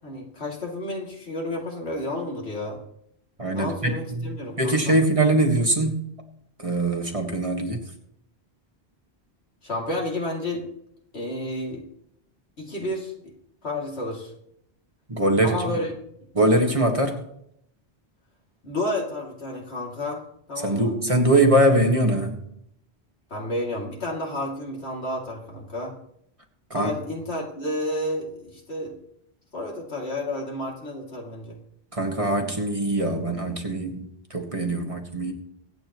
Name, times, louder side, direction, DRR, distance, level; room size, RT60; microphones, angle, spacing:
voice 1, 0.0-2.8 3.5-4.9 9.6-10.6 11.1-11.8 12.6-13.1 13.6-14.3 15.4-15.9 18.6-20.2 20.5-20.9 23.3-25.9 26.7-28.9 29.5-31.6, left 1 dB, 85° left, -2 dB, 3.0 m, -31 dB
voice 2, 3.4-4.3 4.6-6.1 6.6-7.8 15.1-15.8 16.4-17.2 20.6-22.4 26.7-26.9 31.9-35.3, right 1 dB, 30° right, 2 dB, 1.7 m, -22 dB
24.0 x 9.1 x 3.1 m, 0.74 s
omnidirectional pair, 1.1 m